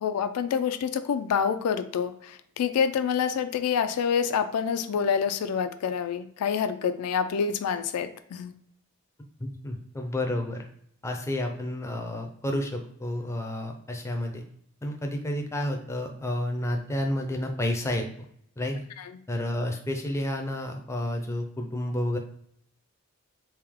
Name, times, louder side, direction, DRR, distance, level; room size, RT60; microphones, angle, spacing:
voice 1, 0.0-8.5 19.0-19.1, left 7 dB, 90° left, 10 dB, 0.4 m, -27 dB
voice 2, 9.4-10.6 11.0-14.4 14.8-18.1 18.6-18.8 19.3-22.2, left 1 dB, 10° left, 3 dB, 0.4 m, -30 dB
3.4 x 2.7 x 3.5 m, 0.69 s
head